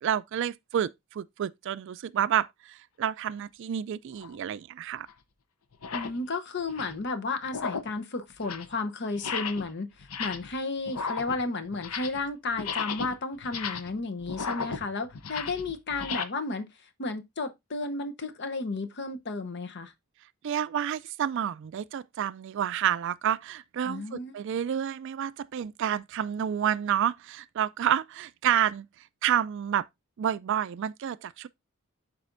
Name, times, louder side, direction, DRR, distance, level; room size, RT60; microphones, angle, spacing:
voice 1, 0.0-5.1 20.4-28.9 29.2-29.9 30.2-31.5, right 9 dB, 55° right, 0.3 m, -29 dB
sound 1, 4.2-4.4 5.1-5.2 5.7-6.2 6.6-7.0 7.4-8.0 8.3-8.8 9.2-9.7 10.0-10.6 10.9-12.3 12.5-16.2, left 5 dB, 80° left, 0.8 m, -35 dB
voice 2, 5.9-9.9 10.2-16.7 17.0-19.9 23.8-24.4, left 3 dB, 50° left, 0.8 m, -33 dB
11.5 x 4.2 x 2.5 m
head